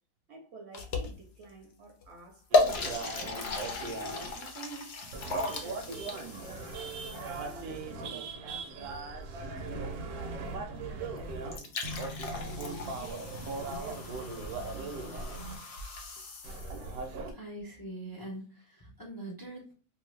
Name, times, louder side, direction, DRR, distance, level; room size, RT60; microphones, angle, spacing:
voice 1, 0.3-3.2 3.8-9.0 9.4-11.7 12.5-15.6, right 3 dB, 60° right, 0.7 m, -49 dB
sound 1, 0.7-1.4 2.0-2.1 2.5-7.8 11.2-11.3 11.5-17.0, left 3 dB, 60° left, 0.7 m, -35 dB
sound 2, 2.5-4.3 5.1-11.6 11.8-15.6 16.4-17.3, right 3 dB, 80° right, 1.1 m, -39 dB
voice 2, 17.3-19.7, right 1 dB, 35° left, 0.3 m, -43 dB
2.7 x 2.5 x 3.1 m
omnidirectional pair, 1.6 m